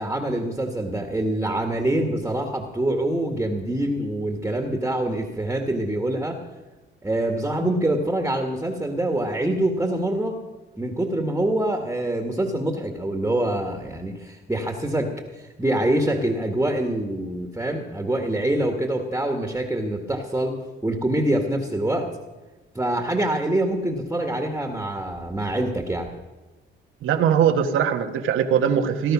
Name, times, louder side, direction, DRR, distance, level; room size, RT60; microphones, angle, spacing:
voice 1, 0.0-6.4 7.0-10.4 10.8-22.1 22.7-26.1, right 1 dB, 10° right, 4 dB, 1.9 m, -25 dB
voice 2, 27.0-29.1, right 8 dB, 85° right, 6 dB, 1.5 m, -21 dB
18.5 x 11.5 x 6.2 m, 1.2 s
cardioid pair, 90°, 20 cm